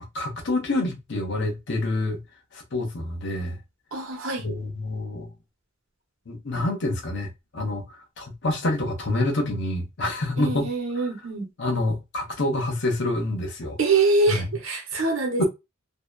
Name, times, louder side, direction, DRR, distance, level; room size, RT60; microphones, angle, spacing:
voice 1, 0.1-2.2 2.5-3.6 4.4-5.3 6.3-7.9 8.2-10.7 11.0-11.1 11.6-13.8 14.3-14.5 15.4-15.5, left 2 dB, 60° left, 0.8 m, -27 dB
voice 2, 3.9-4.4 10.4-11.5 13.8-15.5, right 3 dB, 85° right, 0.9 m, -24 dB
2.7 x 2.2 x 2.3 m
head